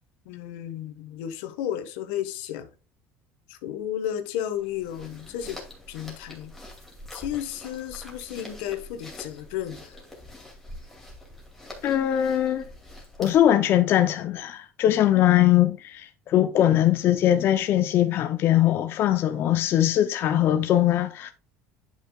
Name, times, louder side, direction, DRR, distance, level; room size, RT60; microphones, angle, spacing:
voice 1, 0.2-2.7 3.5-5.6 5.9-6.5 7.1-10.0, left 11 dB, 85° left, 1.2 m, -33 dB
sound 1, 4.6-13.6, left 1 dB, 5° left, 2.4 m, -45 dB
voice 2, 11.8-12.6 13.2-21.3, left 12 dB, 45° left, 0.6 m, -21 dB
10.0 x 5.8 x 2.3 m
cardioid pair, 140°, 5 cm